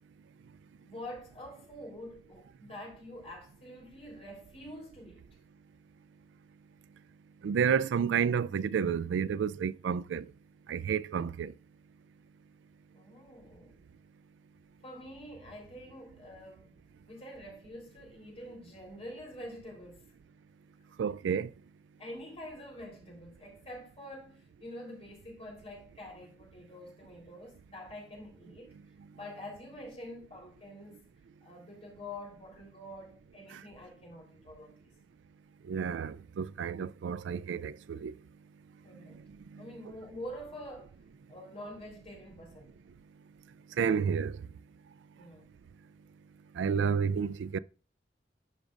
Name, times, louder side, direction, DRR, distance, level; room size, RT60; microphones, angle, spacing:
voice 1, 0.8-5.3 12.9-13.8 14.8-20.0 22.0-28.7 29.1-31.0 31.4-34.9 38.8-39.2 39.6-40.9 41.3-42.8 45.2-45.5, left 1 dB, 35° left, 3.5 m, -46 dB
voice 2, 7.4-10.3 10.7-11.5 21.0-21.5 33.5-33.6 35.7-38.1 39.5-39.7 43.8-44.4 46.6-47.6, right 7 dB, 75° right, 0.3 m, -30 dB
12.0 x 5.2 x 2.4 m
head